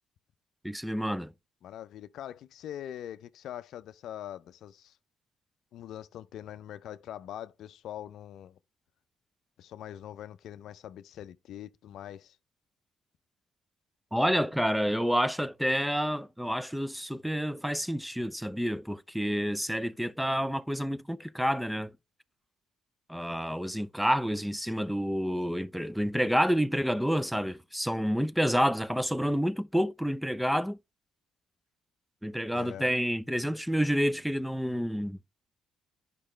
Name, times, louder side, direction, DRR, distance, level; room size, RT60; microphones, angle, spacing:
voice 1, 0.6-1.3 14.1-21.9 23.1-30.8 32.2-35.2, equal, ahead, 0.5 m, -29 dB
voice 2, 1.6-4.9 5.7-8.6 9.6-12.4 32.5-32.9, left 11 dB, 70° left, 0.4 m, -43 dB
10.0 x 5.3 x 3.1 m
supercardioid pair, 55°, 0 cm